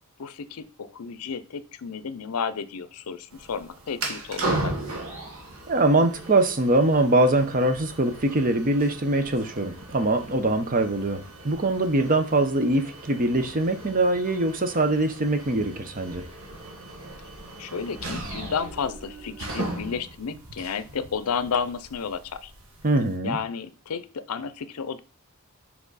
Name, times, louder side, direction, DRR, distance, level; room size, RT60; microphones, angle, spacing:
voice 1, 0.2-4.8 17.6-22.5 23.2-25.0, left 6 dB, 80° left, 14 dB, 0.6 m, -32 dB
sound 1, 3.3-23.2, right 2 dB, 65° right, 1.6 m, -37 dB
voice 2, 5.7-16.2 22.8-23.4, right 2 dB, 40° right, 8 dB, 0.8 m, -23 dB
5.9 x 4.9 x 4.0 m, 0.35 s
head